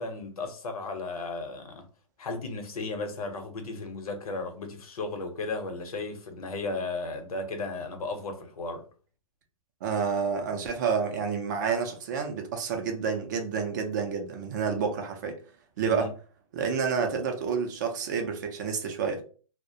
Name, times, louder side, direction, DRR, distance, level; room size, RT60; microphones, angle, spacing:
voice 1, 0.0-1.9 2.2-8.8 15.8-16.1, left 3 dB, 80° left, 0.8 m, -35 dB
voice 2, 9.8-15.4 15.8-16.1 16.5-19.2, right 6 dB, 30° right, 0.4 m, -29 dB
2.3 x 2.0 x 2.6 m
hypercardioid pair, 160°, 19 cm